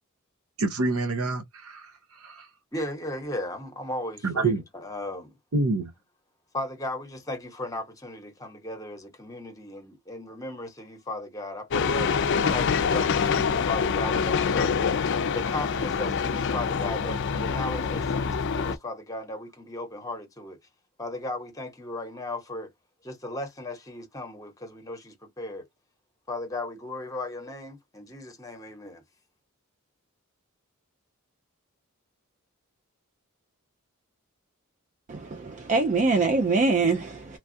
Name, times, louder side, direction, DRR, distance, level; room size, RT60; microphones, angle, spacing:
voice 1, 0.6-1.9 2.2-2.4 4.2-4.6 5.5-5.9, right 3 dB, 75° right, 0.7 m, -26 dB
voice 2, 2.7-5.3 6.5-20.6 21.0-22.7 23.0-25.7 26.3-29.0, left 1 dB, 15° left, 0.9 m, -36 dB
sound 1, 11.7-18.8, left 6 dB, 55° left, 0.4 m, -25 dB
voice 3, 35.1-37.4, right 3 dB, 35° right, 0.4 m, -24 dB
3.1 x 2.3 x 2.6 m
head